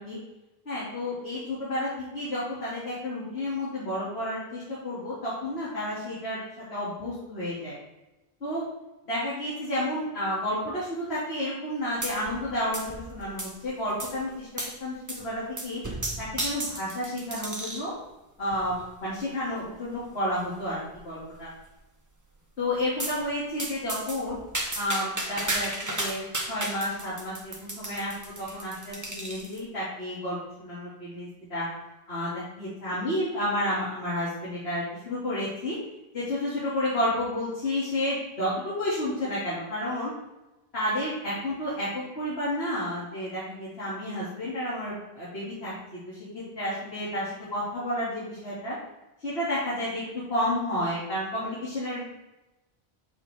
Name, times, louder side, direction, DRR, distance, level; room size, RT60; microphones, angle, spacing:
voice 1, 0.7-6.4 6.7-7.8 8.4-8.6 9.1-14.5 14.8-15.8 16.2-17.9 18.4-21.5 22.6-24.4 24.7-26.2 26.5-28.1 28.4-31.6 32.1-35.8 36.1-40.1 40.7-45.7 46.1-48.7 49.2-52.1, left 1 dB, 80° left, -9 dB, 2.6 m, -31 dB
sound 1, 12.0-12.5 12.7-13.6 14.0-14.2 14.6-14.8 15.1-15.3 15.6-17.9 18.5-18.9 19.5-19.6 19.9-20.0 20.3-20.4 20.9-21.3 23.0-23.2 23.6-29.6, right 1 dB, 20° right, 1.0 m, -34 dB
8.4 x 6.6 x 3.4 m, 1.0 s
omnidirectional pair, 1.1 m